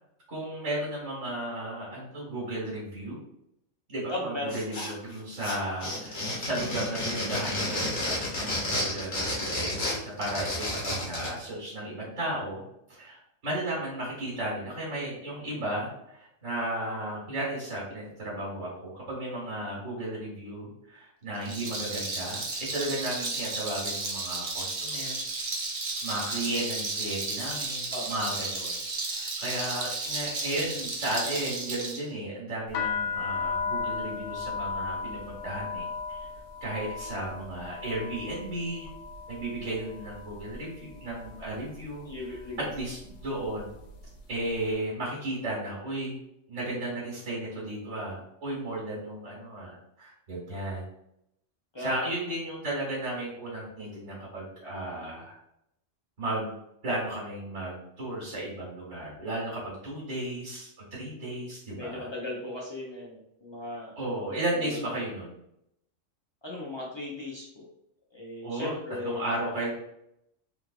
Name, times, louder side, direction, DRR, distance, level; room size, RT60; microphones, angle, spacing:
voice 1, 0.3-3.2 3.9-12.6 12.9-25.2 26.0-28.8 29.1-36.3 36.6-38.9 39.3-42.1 42.6-43.7 44.3-46.2 46.5-50.8 51.8-55.4 56.2-56.5 56.8-62.1 64.0-65.4 68.4-68.8 69.0-69.7, right 1 dB, 80° right, -5 dB, 1.7 m, -34 dB
voice 2, 4.1-4.6 27.9-28.1 42.0-42.6 51.7-52.0 61.7-63.9 64.3-64.8 66.4-67.6 68.1-69.2, left 2 dB, 30° left, -4 dB, 0.6 m, -37 dB
sound 1, 4.5-5.1 5.4-11.4, left 1 dB, 55° left, 1.3 m, -31 dB
Rattle, 21.4-32.0, right 3 dB, 40° right, 0.5 m, -33 dB
sound 2, 32.7-40.6 40.9-41.5 42.2-42.5 42.7-44.2, left 5 dB, 80° left, 1.0 m, -35 dB
3.3 x 3.2 x 2.4 m, 0.79 s
omnidirectional pair, 1.3 m